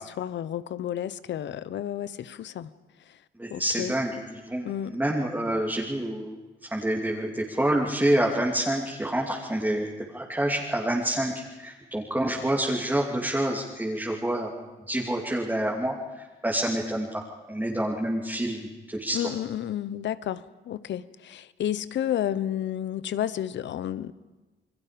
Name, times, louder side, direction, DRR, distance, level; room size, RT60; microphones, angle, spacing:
voice 1, 0.0-2.7 3.1-3.2 3.5-3.9 4.6-5.0 19.1-24.1, left 11 dB, 65° left, 16 dB, 0.9 m, -31 dB
voice 2, 3.4-14.5 14.9-17.2 17.5-19.2, right 1 dB, 10° right, -3 dB, 2.8 m, -28 dB
29.5 x 21.5 x 5.2 m, 1.2 s
cardioid pair, 90°, 20 cm